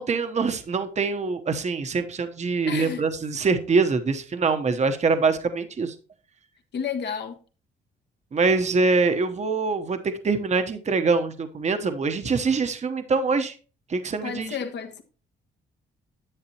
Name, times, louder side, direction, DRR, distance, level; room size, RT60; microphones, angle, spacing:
voice 1, 0.0-5.9 8.3-13.5 13.9-14.5, right 4 dB, 35° right, 1.0 m, -24 dB
voice 2, 2.7-3.1 6.7-7.4 14.2-15.0, left 7 dB, 60° left, 1.4 m, -31 dB
10.0 x 8.0 x 2.9 m
cardioid pair, 90°, 20 cm